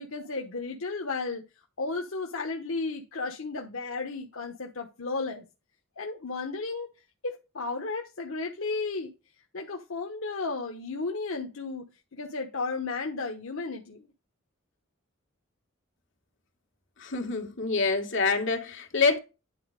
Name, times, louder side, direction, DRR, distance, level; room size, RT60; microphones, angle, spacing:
voice 1, 0.0-1.4 1.8-5.4 6.0-6.9 7.2-9.1 9.5-11.9 12.1-14.1, left 3 dB, 80° left, 1.1 m, -33 dB
voice 2, 17.0-19.2, left 4 dB, 60° left, 2.1 m, -26 dB
10.0 x 4.1 x 5.1 m
head